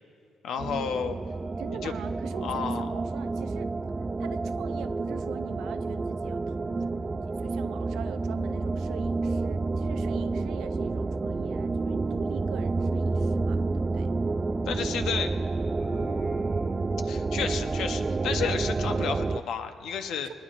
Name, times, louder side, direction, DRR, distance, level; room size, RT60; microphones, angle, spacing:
voice 1, 0.4-1.2 1.7-1.9 2.4-2.9 14.6-15.3 15.8-20.3, left 7 dB, 80° left, 7 dB, 0.8 m, -32 dB
sound 1, 0.6-19.4, right 3 dB, 25° right, 0.3 m, -29 dB
voice 2, 1.6-3.7 4.2-14.1 20.2-20.3, right 10 dB, 85° right, 11 dB, 0.5 m, -43 dB
23.0 x 20.0 x 2.5 m, 2.6 s
cardioid pair, 90°, 0 cm